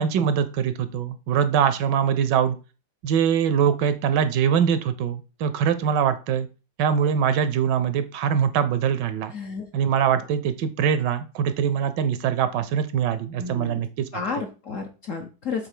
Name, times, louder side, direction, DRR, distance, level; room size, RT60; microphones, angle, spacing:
voice 1, 0.0-2.6 3.0-6.5 6.8-9.3 9.7-14.1, right 8 dB, 75° right, 12 dB, 1.2 m, -23 dB
voice 2, 9.3-9.7 10.1-10.3 13.4-13.9 14.1-15.7, left 5 dB, 60° left, 3 dB, 0.9 m, -32 dB
7.5 x 2.7 x 4.9 m, 0.33 s
omnidirectional pair, 2.1 m